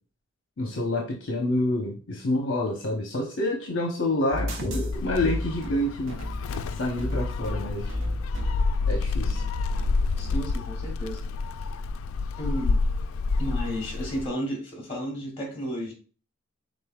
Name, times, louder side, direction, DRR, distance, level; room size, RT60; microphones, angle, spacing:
voice 1, 0.6-6.2 6.8-8.0 8.9-9.4, left 1 dB, 65° left, 0 dB, 0.8 m, -28 dB
sound 1, 4.3-10.4, left 1 dB, 80° right, 1.0 m, -33 dB
Gull seagull, 4.9-14.3, left 3 dB, 85° left, 0.3 m, -29 dB
voice 2, 10.2-11.2 12.4-12.8 13.4-15.9, equal, 30° left, -1 dB, 1.9 m, -33 dB
5.3 x 3.9 x 2.3 m, 0.38 s
head